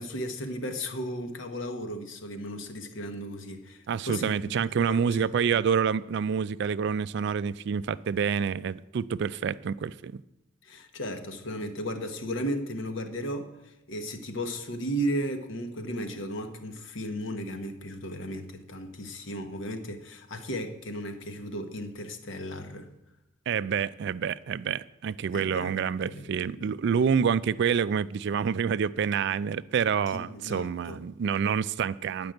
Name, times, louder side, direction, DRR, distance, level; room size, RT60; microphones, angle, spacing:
voice 1, 0.0-4.5 4.8-5.6 10.6-22.9 25.3-26.7 30.1-31.0, equal, 70° left, 1.1 m, -35 dB
voice 2, 3.9-10.2 23.5-32.3, right 6 dB, 55° right, 0.3 m, -27 dB
10.5 x 5.3 x 7.8 m
head